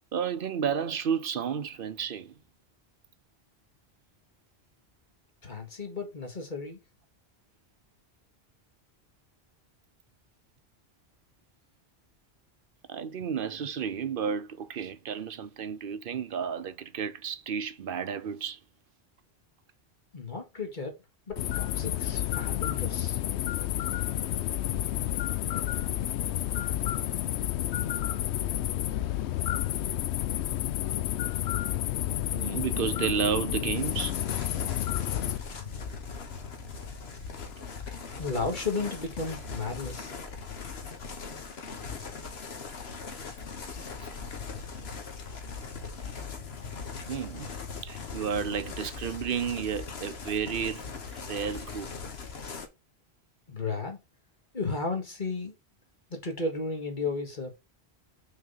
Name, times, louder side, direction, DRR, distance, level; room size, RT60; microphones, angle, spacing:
voice 1, 0.1-2.4 12.9-18.6 32.3-34.2 47.1-47.5 47.8-51.9, right 7 dB, 60° right, 0.8 m, -32 dB
voice 2, 5.4-6.8 20.1-21.0 21.3-23.2 38.2-40.1 53.5-54.0 54.5-55.6 56.1-57.6, left 3 dB, 45° left, 2.0 m, -34 dB
sound 1, 21.3-35.4, left 12 dB, 85° left, 0.9 m, -30 dB
sound 2, 33.8-52.7, left 5 dB, 70° left, 1.4 m, -40 dB
6.2 x 4.1 x 5.6 m
omnidirectional pair, 1.1 m